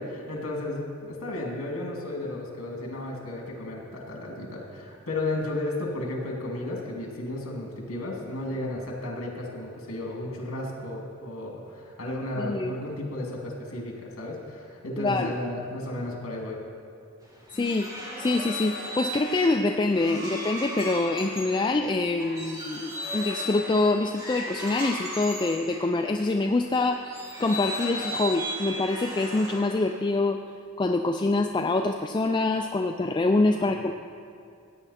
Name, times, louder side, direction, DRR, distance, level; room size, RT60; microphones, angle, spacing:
voice 1, 0.0-16.6 33.5-33.6, left 1 dB, 80° left, -1 dB, 2.4 m, -33 dB
voice 2, 12.4-12.7 15.0-15.4 17.5-17.9 18.2-30.4 30.8-33.9, left 2 dB, 20° left, 4 dB, 0.3 m, -25 dB
sound 1, 17.3-26.4 27.0-30.0, equal, 15° right, 1.7 m, -36 dB
16.0 x 8.9 x 4.2 m, 2.5 s
head